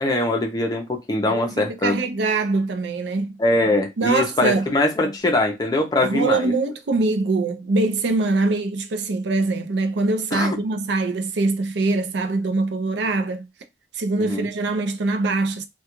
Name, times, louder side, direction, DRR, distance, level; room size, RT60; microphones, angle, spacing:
voice 1, 0.0-1.9 3.4-6.5 10.3-10.6 14.3-14.5, left 2 dB, 20° left, 0.5 m, -22 dB
voice 2, 1.3-3.4 4.0-4.7 6.0-13.5 13.9-15.7, right 3 dB, 70° right, 0.4 m, -23 dB
2.3 x 2.2 x 2.9 m
head